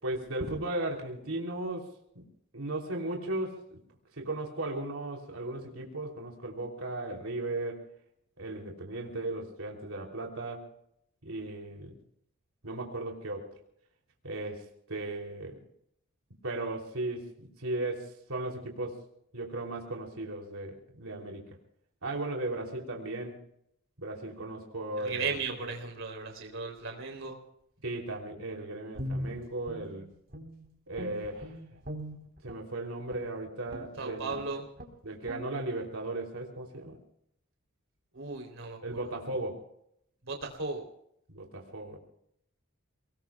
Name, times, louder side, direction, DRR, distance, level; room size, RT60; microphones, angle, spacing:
voice 1, 0.0-1.9 2.1-2.2 2.5-3.6 4.2-7.8 8.4-10.7 11.2-11.9 12.6-13.5 14.2-15.6 16.4-19.0 19.3-21.5 22.0-23.4 24.0-25.3 27.8-30.0 30.9-31.5 32.4-34.4 35.0-37.0 38.8-39.5 41.3-42.0, right 2 dB, 85° right, 0 dB, 3.2 m, -36 dB
voice 2, 25.0-27.3 34.0-34.6 38.1-39.0 40.2-40.9, right 4 dB, 65° right, 2 dB, 3.4 m, -36 dB
Guitar, 28.9-30.7 30.9-32.7 33.1-33.3 33.7-34.0 34.4-34.5 34.8-35.0 35.2-35.5, equal, 45° right, 3.9 m, -40 dB
29.5 x 19.5 x 2.3 m, 0.74 s
head